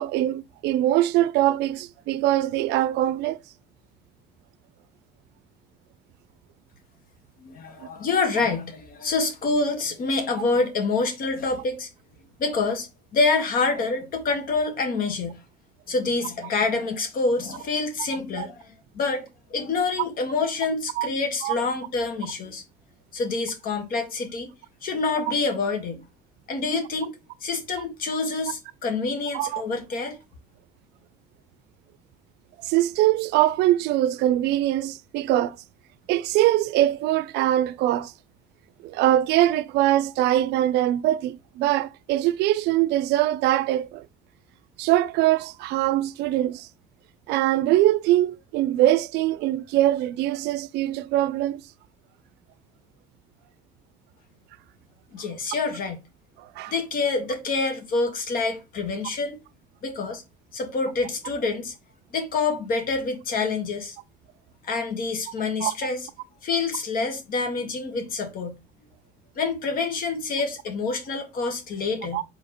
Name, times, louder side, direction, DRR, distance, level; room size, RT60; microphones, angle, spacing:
voice 1, 0.0-3.4 7.8-7.9 18.4-18.5 21.0-21.1 21.4-21.6 29.3-29.6 32.6-35.6 36.1-38.1 38.8-44.1 44.8-46.7 47.3-51.6 56.4-56.7 65.6-65.7 72.1-72.2, right 14 dB, 85° right, 0.4 m, -22 dB
voice 2, 7.4-11.9 12.4-15.4 15.9-22.6 23.1-24.5 24.8-26.0 26.5-27.1 27.4-30.2 55.1-56.0 56.7-59.4 59.8-60.2 60.5-61.7 62.1-64.0 64.6-66.1 66.4-68.6 69.4-72.2, left 3 dB, 60° left, 1.4 m, -27 dB
4.8 x 3.8 x 2.9 m
cardioid pair, 110°, 17 cm